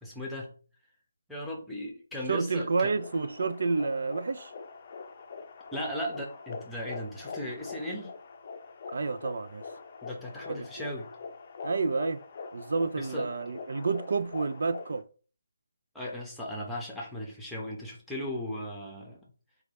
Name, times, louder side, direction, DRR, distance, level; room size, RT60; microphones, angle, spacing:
voice 1, 0.0-0.5 1.3-2.9 5.7-8.1 10.0-11.1 13.0-13.3 15.9-19.3, left 1 dB, ahead, 0.9 m, -37 dB
voice 2, 2.3-4.5 8.9-9.6 10.5-10.7 11.6-12.2 12.5-15.0, right 4 dB, 60° right, 0.4 m, -29 dB
sound 1, 2.8-15.0, left 4 dB, 40° left, 0.5 m, -43 dB
3.2 x 2.3 x 4.0 m
figure-of-eight pair, 155°, 0 cm